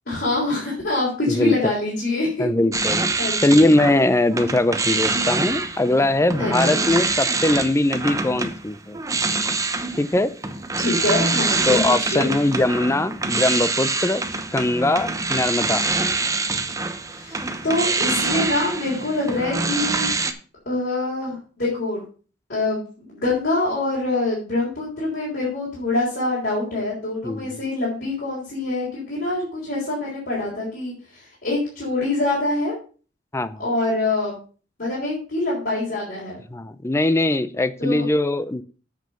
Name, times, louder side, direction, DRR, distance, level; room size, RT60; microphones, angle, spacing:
voice 1, 0.1-2.5 3.2-3.7 6.4-6.8 9.7-9.8 10.8-12.3 17.0-20.1 20.7-22.0 22.5-32.7 33.6-34.4 34.8-36.4 37.8-38.1, left 2 dB, 60° left, -5 dB, 3.4 m, -25 dB
voice 2, 1.3-1.7 2.4-3.0 3.4-9.0 10.0-10.3 11.7-14.2 14.5-15.8 27.2-27.5 33.3-33.6 36.5-38.6, left 2 dB, 15° left, 14 dB, 0.5 m, -21 dB
sound 1, 2.7-4.0 4.3-20.3, right 3 dB, 20° right, 0.8 m, -25 dB
7.6 x 6.1 x 5.5 m, 0.39 s
head